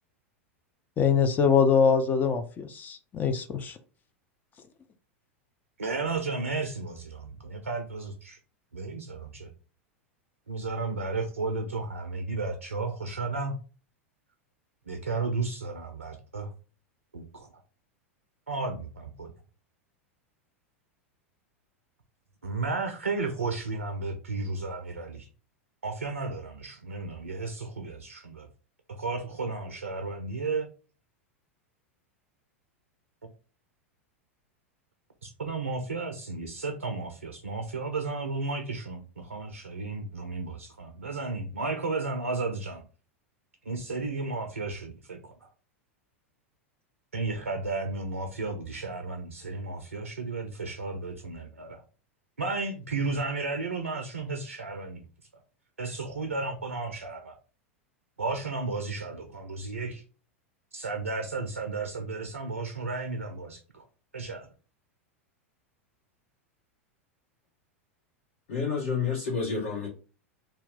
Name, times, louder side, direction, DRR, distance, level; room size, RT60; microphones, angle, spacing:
voice 1, 1.0-3.8, left 6 dB, 25° left, 7 dB, 0.4 m, -23 dB
voice 2, 5.8-8.4 8.7-9.5 10.5-13.5 14.9-16.5 17.1-17.5 18.5-19.3 22.4-25.3 25.8-28.5 28.9-30.7 33.2-33.3 35.2-42.8 43.7-45.5 47.1-51.8 52.4-55.0 55.8-57.4 58.2-60.0 60.7-63.8 64.1-64.5, right 3 dB, 85° right, 6 dB, 0.4 m, -33 dB
voice 3, 68.5-69.9, left 5 dB, 55° left, -5 dB, 1.3 m, -29 dB
2.8 x 2.2 x 3.6 m, 0.37 s
figure-of-eight pair, 90°, 7 cm